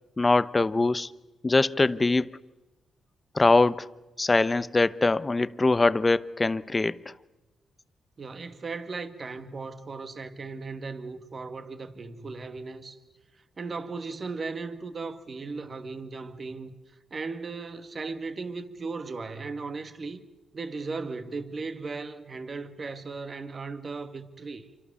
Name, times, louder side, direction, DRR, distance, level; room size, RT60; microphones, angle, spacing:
voice 1, 0.2-1.1 1.4-2.4 3.3-3.9 4.2-7.0, left 3 dB, 25° left, 0.8 m, -23 dB
voice 2, 8.2-13.0 13.6-16.7 17.1-20.2 20.5-24.7, right 4 dB, 45° right, 2.1 m, -37 dB
27.0 x 24.5 x 7.1 m
cardioid pair, 75°, 0 cm